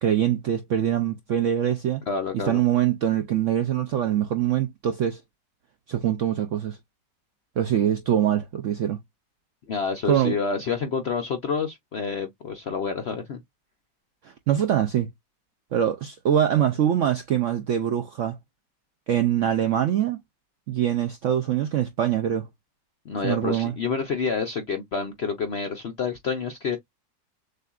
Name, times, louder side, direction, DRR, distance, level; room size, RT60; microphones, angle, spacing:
voice 1, 0.0-2.0 2.5-5.2 5.9-6.8 7.6-9.0 10.1-10.4 14.2-15.1 15.7-18.4 19.1-20.2 20.7-22.5 23.2-23.7, right 10 dB, 75° right, 0.7 m, -23 dB
voice 2, 2.1-2.6 9.7-13.4 23.1-26.8, left 5 dB, 65° left, 0.6 m, -28 dB
6.5 x 2.5 x 2.3 m
omnidirectional pair, 1.9 m